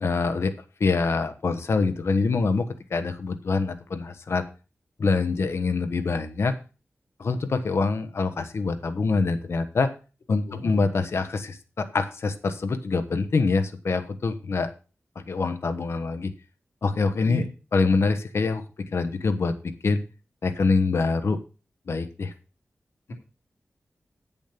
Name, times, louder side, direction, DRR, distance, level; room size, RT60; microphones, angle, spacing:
voice 1, 0.0-0.5 0.8-4.4 5.0-6.5 7.2-9.9 10.3-14.7 15.1-16.3 16.8-17.4 17.7-20.0 20.4-21.4 21.9-22.3, left 4 dB, 70° left, 9 dB, 1.2 m, -25 dB
voice 2, 10.5-10.8 17.2-17.5 23.1-23.2, left 2 dB, 90° left, 1 dB, 2.7 m, -34 dB
8.5 x 7.2 x 5.9 m, 0.34 s
wide cardioid pair, 85°, 5 cm